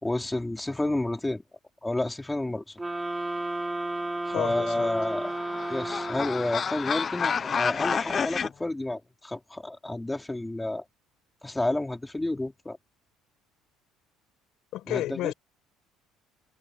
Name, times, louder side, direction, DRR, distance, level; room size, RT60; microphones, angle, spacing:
voice 1, 0.0-1.4 1.8-2.8 4.2-5.3 5.7-10.8 11.4-12.8 14.9-15.3, left 2 dB, 5° left, 4.1 m, -30 dB
sound 1, 2.8-6.7, right 2 dB, 10° right, 7.1 m, -33 dB
voice 2, 4.3-5.0 14.7-15.3, left 15 dB, 60° left, 6.1 m, -31 dB
sound 2, 4.6-8.5, left 6 dB, 25° left, 1.1 m, -30 dB
cardioid pair, 155°, 0 cm